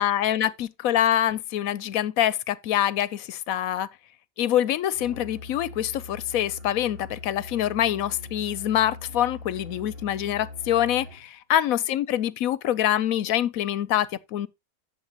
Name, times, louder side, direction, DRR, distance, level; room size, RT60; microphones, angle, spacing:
voice 1, 0.0-3.9 4.4-14.5, left 11 dB, 80° left, 1.2 m, -25 dB
Musical instrument, 4.9-11.3, left 3 dB, 45° right, 1.9 m, -42 dB
12.0 x 7.2 x 2.9 m
omnidirectional pair, 1.4 m